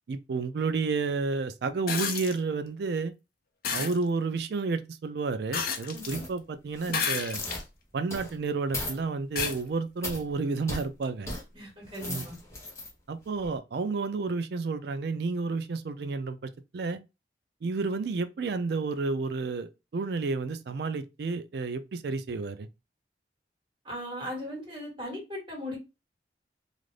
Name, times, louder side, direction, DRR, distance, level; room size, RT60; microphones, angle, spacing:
voice 1, 0.1-3.1 3.7-7.4 7.9-11.3 12.0-12.3 13.1-17.0 17.6-22.7, right 4 dB, 60° right, 0.4 m, -31 dB
sound 1, 1.9-2.4 3.6-4.0 5.5-6.1 6.9-7.6 8.3-8.4 9.4-9.6 11.0-11.1, left 6 dB, 55° left, 0.5 m, -31 dB
voice 2, 5.9-6.2 11.5-12.4 23.8-25.8, left 1 dB, 25° right, 1.5 m, -38 dB
sound 2, 6.0-6.3 6.7-7.0 7.3-7.6 8.1-8.3 8.7-9.0 9.4-9.6 10.0-10.2 10.7-10.8 11.3-11.4 11.8-12.9 13.4-13.5, left 1 dB, 15° left, 0.8 m, -37 dB
2.5 x 2.5 x 3.2 m
head